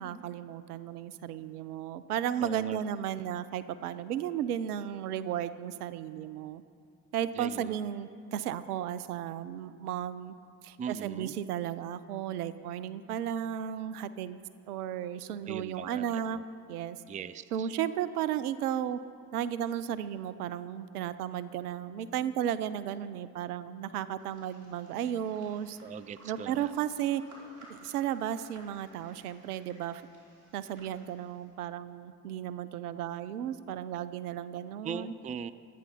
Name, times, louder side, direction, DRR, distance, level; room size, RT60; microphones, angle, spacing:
voice 1, 0.0-6.6 7.1-10.3 10.6-14.4 14.7-16.4 16.7-17.0 17.5-19.0 19.3-25.8 26.2-27.2 27.7-30.0 30.5-35.1, right 10 dB, 70° right, 15 dB, 0.7 m, -34 dB
voice 2, 2.4-2.8 7.3-7.7 10.8-11.3 15.5-16.4 17.1-17.7 25.8-26.7 34.8-35.5, right 7 dB, 15° right, 15 dB, 0.5 m, -40 dB
sound 1, 24.2-31.5, right 1 dB, 40° right, 4.9 m, -57 dB
25.0 x 9.5 x 5.3 m, 2.4 s
figure-of-eight pair, 55°, 46 cm